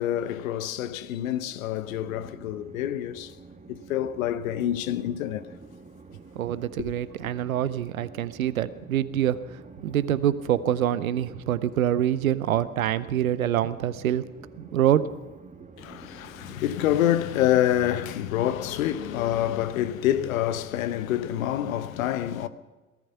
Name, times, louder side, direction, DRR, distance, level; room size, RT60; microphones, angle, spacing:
voice 1, 0.0-3.4 3.7-5.5 6.8-6.9 7.2-7.3 15.8-22.5, left 12 dB, 80° left, 0.8 m, -27 dB
Train, 1.9-19.7, right 4 dB, 20° right, 1.5 m, -48 dB
voice 2, 6.3-14.2 14.7-15.0, right 11 dB, 90° right, 0.7 m, -25 dB
18.5 x 13.5 x 5.7 m
hypercardioid pair, 60°, 40 cm